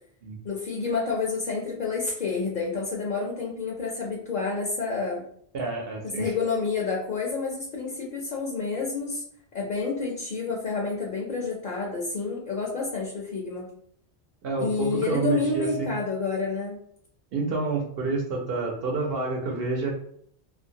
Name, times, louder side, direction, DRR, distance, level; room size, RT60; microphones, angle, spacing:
voice 1, 0.4-5.2 6.2-9.2 9.5-13.7 14.6-16.8, left 4 dB, 55° left, -2 dB, 0.7 m, -29 dB
voice 2, 5.5-6.3 14.4-15.9 17.3-19.9, right 3 dB, 65° right, -1 dB, 0.8 m, -28 dB
2.6 x 2.5 x 2.7 m, 0.67 s
omnidirectional pair, 1.1 m